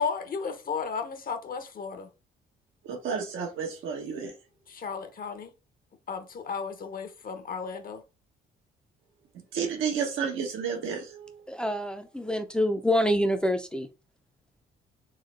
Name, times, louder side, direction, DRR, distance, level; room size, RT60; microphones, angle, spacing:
voice 1, 0.0-2.1 4.7-5.5 6.1-8.0, left 5 dB, 45° left, 0.9 m, -34 dB
voice 2, 2.8-4.3 9.3-11.4, right 6 dB, 85° right, 1.2 m, -31 dB
voice 3, 11.5-13.9, equal, 5° left, 0.6 m, -26 dB
3.7 x 3.0 x 3.2 m
cardioid pair, 90°, 20 cm